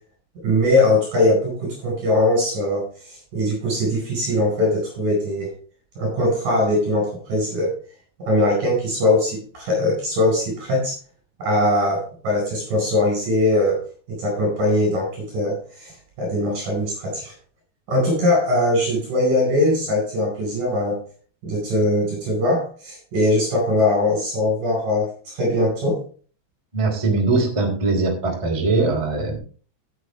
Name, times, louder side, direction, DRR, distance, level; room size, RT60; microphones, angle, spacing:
voice 1, 0.4-5.5 6.0-7.7 8.2-11.0 11.4-13.8 14.1-17.3 17.9-21.0 21.4-26.0, left 1 dB, 45° right, -1 dB, 6.0 m, -21 dB
voice 2, 26.7-29.4, right 3 dB, 10° right, 1 dB, 1.5 m, -21 dB
14.0 x 8.0 x 3.4 m, 0.41 s
omnidirectional pair, 5.4 m